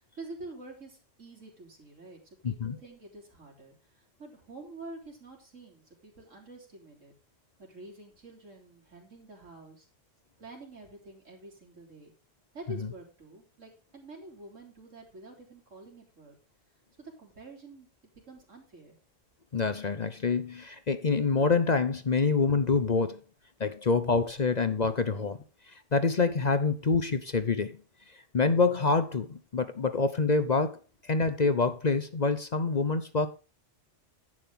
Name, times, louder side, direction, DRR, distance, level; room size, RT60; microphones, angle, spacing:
voice 1, 0.0-7.1 7.6-9.9 10.4-12.1 12.5-16.4 16.9-17.9 18.3-19.0, right 2 dB, 90° right, 3.8 m, -48 dB
voice 2, 2.4-2.8 19.5-23.2 23.6-25.4 25.9-27.8 28.3-30.8 31.1-33.3, left 4 dB, 40° left, 0.8 m, -26 dB
11.0 x 8.8 x 3.6 m
omnidirectional pair, 1.3 m